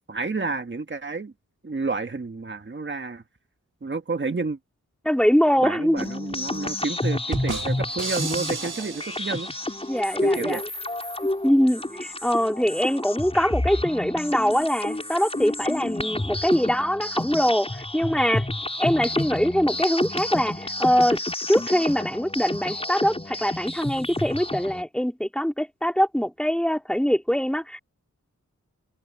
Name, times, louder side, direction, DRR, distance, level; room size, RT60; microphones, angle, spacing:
voice 1, 0.1-1.3 1.6-3.2 3.8-4.6 5.6-9.5 10.2-10.6, right 3 dB, 35° right, 1.6 m, -30 dB
voice 2, 5.0-6.0 9.9-10.6 11.4-18.5 18.8-21.2 21.5-27.8, equal, 5° left, 4.0 m, -23 dB
sound 1, 6.0-24.8, left 1 dB, 20° left, 6.2 m, -30 dB
sound 2, 7.3-10.1, right 4 dB, 70° right, 4.6 m, -34 dB
wide cardioid pair, 90°, 31 cm